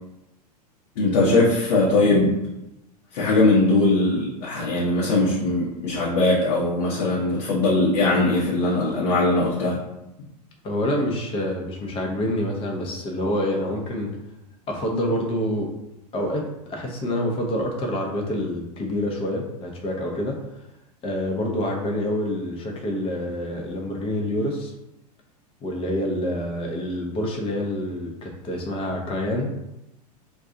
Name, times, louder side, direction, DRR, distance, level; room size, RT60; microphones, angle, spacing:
voice 1, 1.0-2.3 3.1-9.8, left 2 dB, 65° left, -6 dB, 0.9 m, -20 dB
voice 2, 10.6-14.1 14.7-15.7 16.1-20.3 21.0-24.7 25.6-29.5, left 1 dB, 25° left, 0 dB, 0.7 m, -27 dB
2.5 x 2.3 x 3.8 m, 0.90 s
hypercardioid pair, 100°, 21 cm